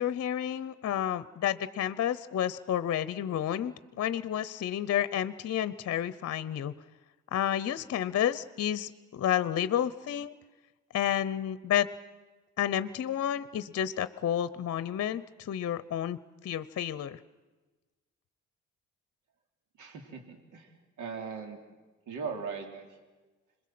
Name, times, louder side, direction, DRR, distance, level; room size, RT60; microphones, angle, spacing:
voice 1, 0.0-6.7 7.3-10.3 10.9-11.9 12.6-17.2, left 10 dB, 55° left, 15 dB, 0.8 m, -30 dB
voice 2, 19.8-21.6 22.1-23.0, right 5 dB, 80° right, 4 dB, 3.4 m, -39 dB
26.5 x 21.5 x 7.7 m, 1.2 s
cardioid pair, 90°, 30 cm